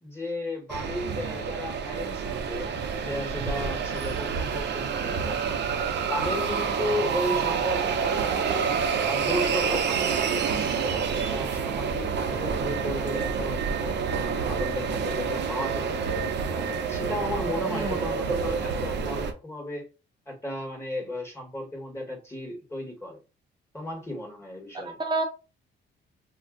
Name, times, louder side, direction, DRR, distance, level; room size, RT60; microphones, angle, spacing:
voice 1, 0.0-5.3 5.7-8.7 9.0-15.9 16.5-19.8 20.3-23.2 23.7-25.0, left 1 dB, 15° left, 1 dB, 1.4 m, -34 dB
sound 1, 0.7-19.3, right 6 dB, 65° right, 0.7 m, -28 dB
voice 2, 17.7-18.1 24.7-25.2, right 2 dB, 20° right, -1 dB, 0.7 m, -29 dB
2.5 x 2.3 x 3.8 m, 0.31 s
cardioid pair, 90°, 20 cm